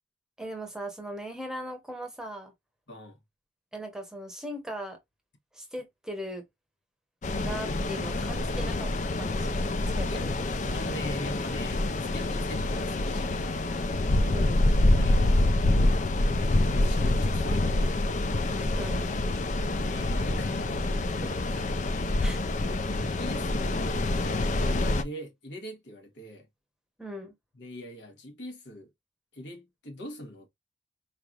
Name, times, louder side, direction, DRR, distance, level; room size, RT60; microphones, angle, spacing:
voice 1, 0.4-2.5 3.7-5.0 5.5-6.5 7.4-8.9 9.2-9.6 10.0-10.3 14.3-14.7 18.7-19.2 21.2-21.6 22.2-22.4 27.0-27.3, equal, 5° right, 0.9 m, -38 dB
voice 2, 2.9-3.2 10.1-10.3 10.7-13.7 14.9-16.1 16.7-18.0 19.8-21.4 22.4-24.1 24.6-26.5 27.5-28.9 29.3-30.5, left 1 dB, 75° left, 1.3 m, -42 dB
sound 1, 7.2-25.0, left 2 dB, 40° left, 0.4 m, -26 dB
4.4 x 3.3 x 2.4 m
head